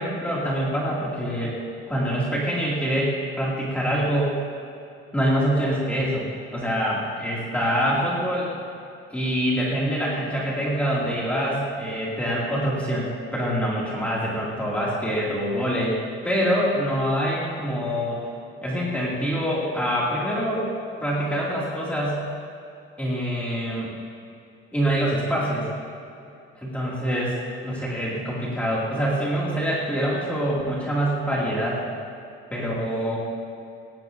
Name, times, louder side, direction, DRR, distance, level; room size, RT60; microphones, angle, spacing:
voice 1, 0.0-1.5 1.9-4.3 5.1-6.2 6.5-8.5 9.1-16.0 16.2-18.2 18.6-20.7 21.0-22.2 23.0-23.9 24.7-25.7 26.5-27.4 27.6-31.8 32.5-33.2, equal, 5° left, -6 dB, 2.4 m, -25 dB
18.0 x 17.0 x 2.6 m, 2.5 s
cardioid pair, 170°, 21 cm